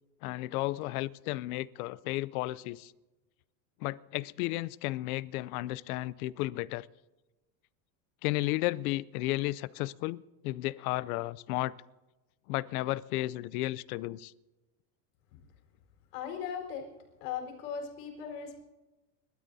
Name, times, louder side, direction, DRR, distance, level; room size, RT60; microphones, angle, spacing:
voice 1, 0.2-2.9 3.8-6.9 8.2-11.7 12.5-14.3, left 18 dB, 65° left, 0.6 m, -33 dB
voice 2, 16.1-16.9 17.2-18.6, left 7 dB, 85° left, 4.4 m, -38 dB
29.5 x 13.0 x 2.7 m
supercardioid pair, 155°, 47 cm